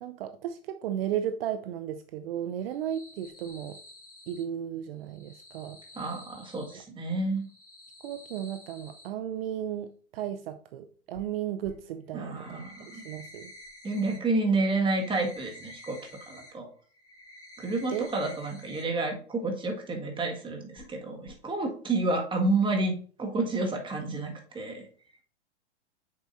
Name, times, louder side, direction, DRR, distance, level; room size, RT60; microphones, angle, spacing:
voice 1, 0.0-3.8 4.3-5.8 6.7-6.8 8.0-12.6 12.9-13.5 17.9-18.1, right 10 dB, 60° right, 0.6 m, -34 dB
sound 1, 2.6-4.4 5.0-6.7 7.3-9.1 11.1-11.2 11.6-11.7 12.2-14.2 14.5-16.5 16.9-18.8 19.2-19.3 19.7-19.8 20.8-20.9 21.3-21.4, left 1 dB, 10° left, 2.4 m, -50 dB
voice 2, 6.0-7.5 12.1-13.0 13.8-16.0 16.3-16.7 17.6-24.9, right 2 dB, 15° right, 1.8 m, -30 dB
8.1 x 6.7 x 2.6 m
hypercardioid pair, 105°, 34 cm